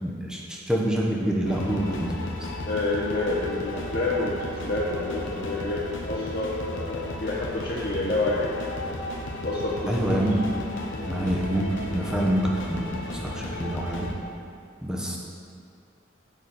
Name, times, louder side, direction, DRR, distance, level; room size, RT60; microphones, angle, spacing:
voice 1, 0.0-2.5 9.9-10.4 11.1-11.7 11.9-14.1 14.8-15.2, right 1 dB, 5° right, -3 dB, 0.9 m, -26 dB
sound 1, 1.4-14.1, left 1 dB, 75° left, 1.0 m, -34 dB
voice 2, 2.7-9.0 9.4-9.9 10.9-11.1, left 2 dB, 55° left, -8 dB, 1.1 m, -28 dB
9.3 x 6.1 x 4.2 m, 2.4 s
head